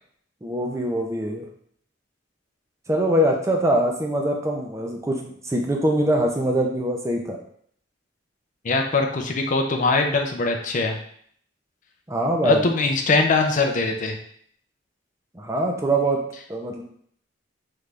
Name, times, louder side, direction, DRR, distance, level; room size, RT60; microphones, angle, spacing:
voice 1, 0.4-1.5 2.9-7.4 12.1-12.6 15.3-16.2 16.5-16.8, right 1 dB, 15° right, 1 dB, 0.6 m, -23 dB
voice 2, 8.6-11.0 12.4-14.2, left 3 dB, 45° left, 3 dB, 0.5 m, -22 dB
3.8 x 3.2 x 3.3 m, 0.63 s
head